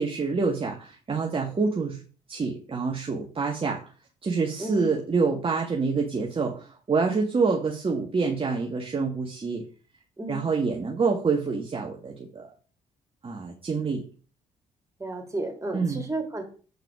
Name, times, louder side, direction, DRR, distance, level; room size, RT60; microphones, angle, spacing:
voice 1, 0.0-2.0 2.3-3.8 4.2-9.6 10.3-12.4 13.2-14.0 15.7-16.0, right 4 dB, 35° right, 0 dB, 1.6 m, -27 dB
voice 2, 10.2-10.5 15.0-16.4, right 2 dB, 20° right, 2 dB, 3.1 m, -33 dB
8.1 x 4.7 x 4.8 m, 0.39 s
hypercardioid pair, 55°, 16 cm